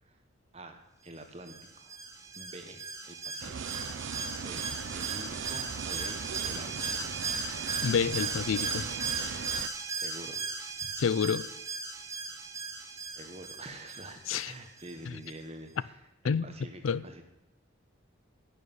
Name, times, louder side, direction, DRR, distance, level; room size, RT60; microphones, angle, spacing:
voice 1, 0.5-2.0 2.4-7.1 10.0-10.5 10.8-11.0 13.1-15.9 16.2-17.2, right 1 dB, 30° right, 1.3 m, -47 dB
Alarm, 1.5-15.0 15.3-15.4, right 4 dB, 15° right, 0.7 m, -37 dB
sound 1, 3.4-9.7, right 6 dB, 65° right, 0.5 m, -39 dB
voice 2, 7.8-8.9 11.0-11.5 14.3-14.5 16.2-16.5 16.8-17.2, left 6 dB, 80° left, 0.4 m, -29 dB
11.0 x 6.7 x 9.4 m
head